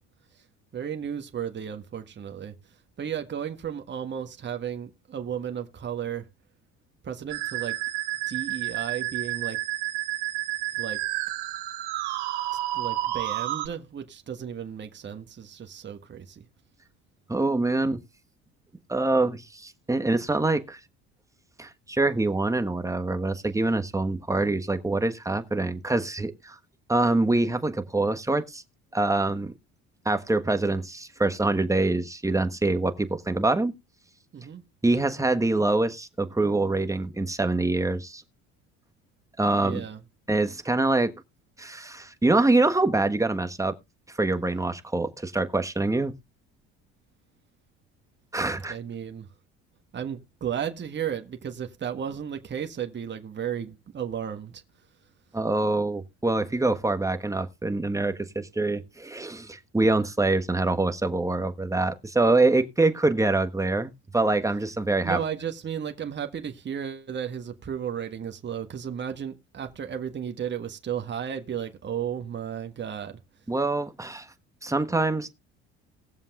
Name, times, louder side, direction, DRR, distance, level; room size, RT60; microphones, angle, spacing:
voice 1, 0.7-2.5 3.0-6.2 7.0-7.8 8.3-9.6 10.8-11.0 12.7-16.4 34.3-34.6 39.6-40.0 48.7-49.3 49.9-54.6 65.0-73.2, right 8 dB, 35° right, 1.4 m, -34 dB
Musical instrument, 7.3-13.7, right 16 dB, 90° right, 2.2 m, -30 dB
voice 2, 17.3-18.0 18.9-20.8 21.6-26.6 26.9-28.6 28.9-29.5 30.0-33.7 34.8-38.2 39.4-39.8 40.3-41.1 41.6-43.8 44.2-46.1 48.3-48.8 55.3-65.2 73.5-74.3 74.6-75.3, right 2 dB, 10° right, 1.3 m, -25 dB
19.5 x 7.3 x 2.4 m
supercardioid pair, 80°, 33 cm